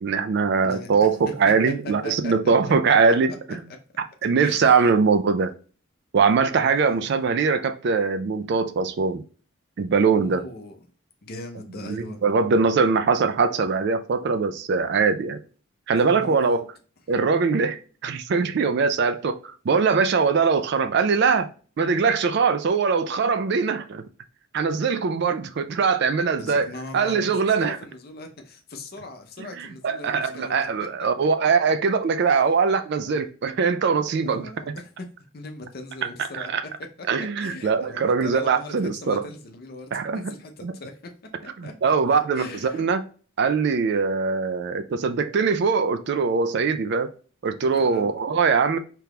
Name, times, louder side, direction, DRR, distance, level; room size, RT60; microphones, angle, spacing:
voice 1, 0.0-3.6 4.2-5.5 6.1-9.2 9.8-10.4 11.9-15.4 15.9-16.6 17.1-19.4 19.7-21.5 21.8-24.0 24.5-26.7 26.9-27.8 29.4-34.5 36.3-36.6 37.1-39.2 39.9-40.2 40.6-40.7 41.6-43.0 43.4-47.1 47.4-48.8, right 5 dB, 50° right, 0.3 m, -22 dB
voice 2, 0.6-3.0 3.3-3.6 4.4-4.9 6.8-7.1 10.1-10.8 11.2-12.2 16.0-16.6 26.4-31.5 32.2-32.3 34.2-34.9 35.3-36.5 37.2-41.1 41.4-42.8 47.7-48.1, left 2 dB, 45° left, 0.6 m, -40 dB
3.4 x 2.9 x 2.3 m
head